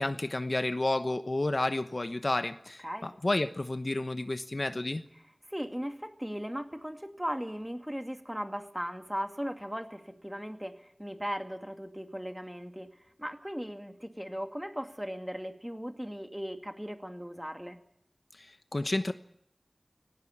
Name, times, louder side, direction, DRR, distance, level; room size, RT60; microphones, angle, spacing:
voice 1, 0.0-5.0 18.4-19.1, left 2 dB, 65° left, 10 dB, 1.0 m, -31 dB
voice 2, 2.8-3.1 5.5-12.9 13.2-17.8, equal, 10° right, 6 dB, 2.3 m, -37 dB
18.5 x 17.5 x 8.8 m, 0.74 s
wide cardioid pair, 40°, 0 cm